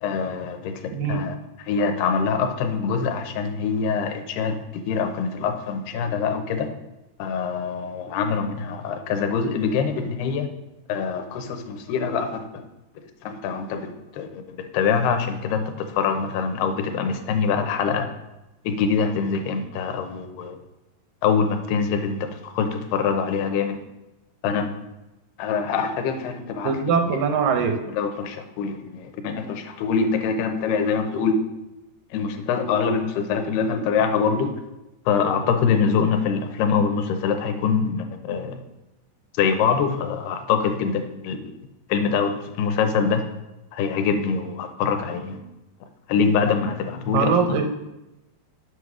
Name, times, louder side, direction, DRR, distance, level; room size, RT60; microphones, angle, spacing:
voice 1, 0.0-0.8 1.1-6.7 7.2-10.5 10.9-12.6 13.2-18.1 18.6-20.6 21.2-23.8 24.4-24.8 25.4-26.8 27.1-27.2 27.9-31.4 32.1-34.5 35.1-38.6 39.3-41.4 41.9-43.2 43.7-45.4 46.1-47.6, left 6 dB, 80° left, 6 dB, 2.8 m, -24 dB
voice 2, 0.9-1.2 26.6-27.8 47.1-47.6, right 6 dB, 80° right, 5 dB, 2.0 m, -22 dB
8.0 x 5.2 x 6.1 m, 0.98 s
omnidirectional pair, 4.6 m